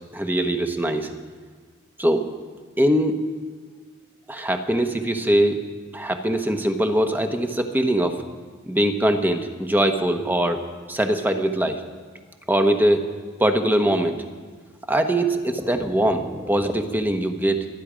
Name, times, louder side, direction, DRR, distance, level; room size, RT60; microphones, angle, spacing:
voice 1, 0.1-1.1 2.0-2.3 2.8-3.2 4.3-5.6 5.9-8.2 8.7-10.6 10.9-11.8 12.5-13.1 13.4-14.2 14.9-17.7, right 1 dB, 10° right, 5 dB, 1.1 m, -22 dB
25.5 x 10.5 x 5.1 m, 1.5 s
head